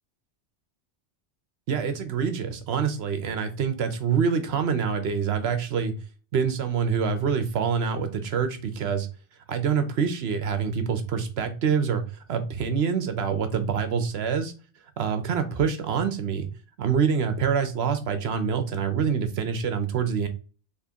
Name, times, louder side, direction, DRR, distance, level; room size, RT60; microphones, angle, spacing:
voice 1, 1.7-5.9 6.3-9.1 9.5-12.0 12.3-14.5 15.0-16.5 16.8-20.3, right 6 dB, 70° right, 9 dB, 0.9 m, -26 dB
4.4 x 3.0 x 2.8 m, 0.35 s
omnidirectional pair, 1.2 m